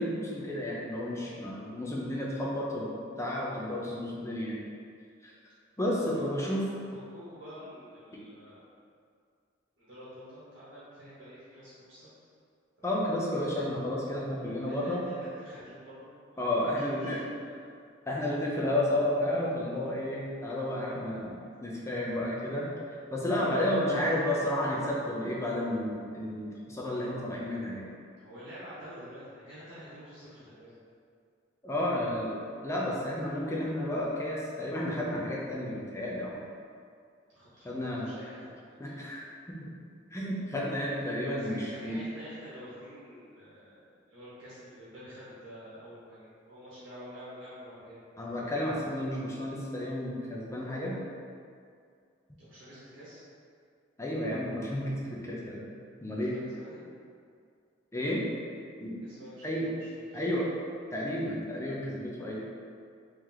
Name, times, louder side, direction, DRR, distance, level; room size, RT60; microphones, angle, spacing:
voice 1, 0.0-4.6 5.2-5.3 5.8-6.6 12.8-15.0 16.4-17.2 18.1-22.7 23.1-27.8 31.6-32.4 32.6-36.4 37.6-38.1 38.8-39.6 40.1-42.0 48.2-51.0 52.3-52.4 54.0-55.6 56.0-56.4 57.9-58.2 58.8-59.0 59.4-59.7 60.1-60.5 60.9-62.4, left 1 dB, 15° left, -5 dB, 0.5 m, -32 dB
voice 2, 6.9-8.6 9.8-12.1 12.8-12.9 14.4-16.7 17.0-17.8 28.2-30.8 37.3-38.6 38.8-39.0 41.3-48.0 52.4-53.2 56.2-56.8 59.0-60.3, equal, 70° right, -11 dB, 1.1 m, -48 dB
3.1 x 2.9 x 3.8 m, 2.3 s
head